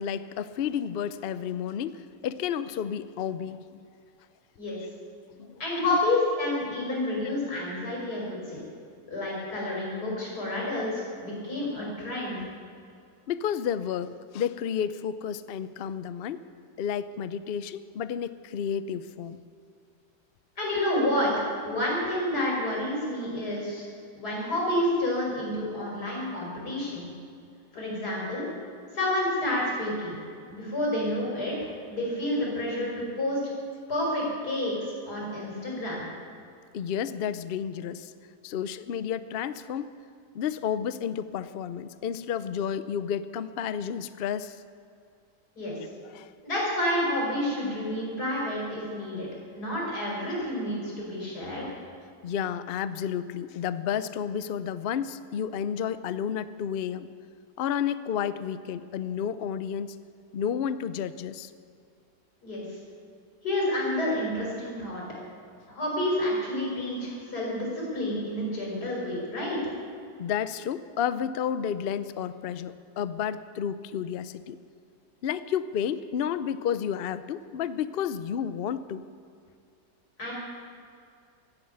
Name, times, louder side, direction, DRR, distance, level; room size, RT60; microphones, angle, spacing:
voice 1, 0.0-3.9 5.4-6.0 13.3-16.4 16.8-19.4 36.7-38.1 38.4-39.9 40.3-44.6 46.1-46.3 52.2-57.1 57.6-60.0 60.3-61.5 70.2-74.6 75.2-79.0, left 8 dB, 85° left, 13 dB, 0.5 m, -31 dB
voice 2, 5.6-8.6 9.1-12.4 20.6-23.9 24.1-27.1 27.7-28.5 28.9-30.2 30.5-33.4 33.9-36.0 45.6-45.8 46.4-49.3 49.6-51.7 62.4-62.6 63.4-65.0 65.7-69.6 80.2-80.3, left 1 dB, 65° left, -4 dB, 5.9 m, -29 dB
15.5 x 9.6 x 9.4 m, 2.4 s
omnidirectional pair, 1.8 m